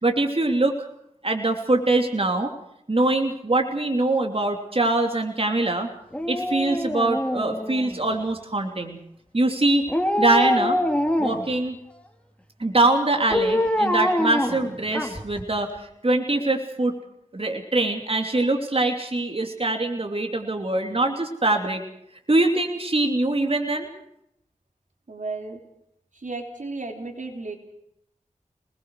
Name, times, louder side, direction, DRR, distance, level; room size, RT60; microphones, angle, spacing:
voice 1, 0.0-0.9 1.2-2.5 2.9-5.9 6.3-9.0 9.3-9.9 10.2-10.8 11.2-11.8 12.6-17.0 17.3-21.8 22.3-23.9, right 2 dB, 45° right, 3 dB, 3.0 m, -23 dB
Dog, 6.1-8.2 9.9-11.6 13.3-15.4 15.8-15.9, left 1 dB, 10° left, 3.2 m, -24 dB
voice 2, 25.1-25.6 26.1-27.6, right 3 dB, 75° right, 3 dB, 3.4 m, -34 dB
28.0 x 20.5 x 4.8 m, 0.76 s
wide cardioid pair, 45°, 13 cm